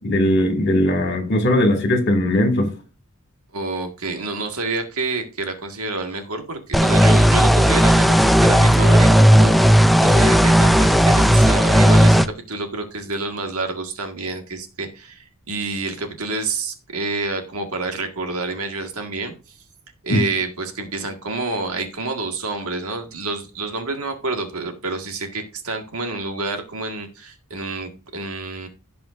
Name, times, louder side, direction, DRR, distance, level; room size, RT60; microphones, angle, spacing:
voice 1, 0.0-2.7 20.1-20.2, left 1 dB, 50° left, 2.4 m, -19 dB
voice 2, 3.5-19.3 20.0-28.7, right 3 dB, 75° right, 1.8 m, -28 dB
sound 1, 6.7-12.3, equal, ahead, 0.4 m, -14 dB
16.0 x 5.6 x 2.6 m
head